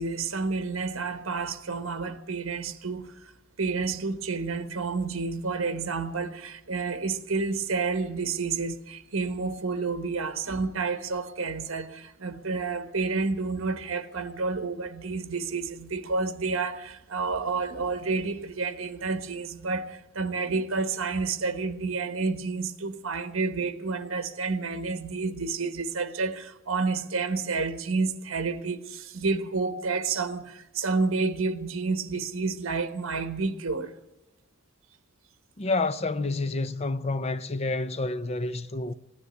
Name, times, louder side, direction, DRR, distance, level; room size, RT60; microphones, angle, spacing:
voice 1, 0.0-3.1 3.6-33.9, right 4 dB, 80° right, 1.1 m, -30 dB
voice 2, 35.6-38.9, left 2 dB, 30° left, 0.6 m, -29 dB
16.0 x 9.8 x 9.3 m
head